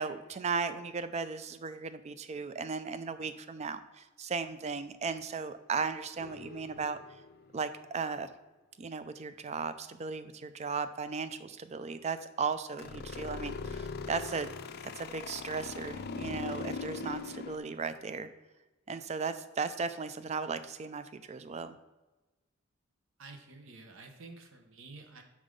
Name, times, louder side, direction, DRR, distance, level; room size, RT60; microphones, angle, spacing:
voice 1, 0.0-7.0 7.5-8.3 8.8-14.5 14.8-18.3 18.9-21.8, right 5 dB, 30° right, 12 dB, 0.4 m, -36 dB
sound 1, 6.2-7.8 12.8-17.6, left 4 dB, 50° left, 0.4 m, -41 dB
voice 2, 23.2-25.2, right 3 dB, 70° right, 5 dB, 0.9 m, -50 dB
5.5 x 4.9 x 5.2 m, 1.1 s
head